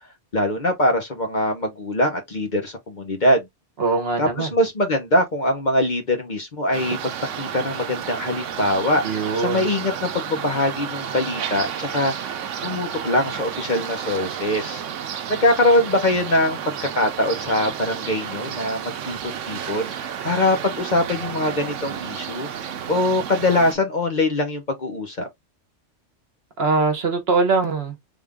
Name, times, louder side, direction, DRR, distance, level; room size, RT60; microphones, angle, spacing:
voice 1, 0.3-3.5 4.2-7.1 7.4-14.8 15.3-22.5 22.9-25.3, left 1 dB, 40° left, 0.9 m, -23 dB
voice 2, 3.8-4.5 9.0-9.7 26.6-28.0, right 4 dB, 55° right, 1.2 m, -22 dB
sound 1, 6.7-23.7, right 8 dB, 80° right, 1.0 m, -31 dB
3.7 x 2.5 x 3.4 m
omnidirectional pair, 1.2 m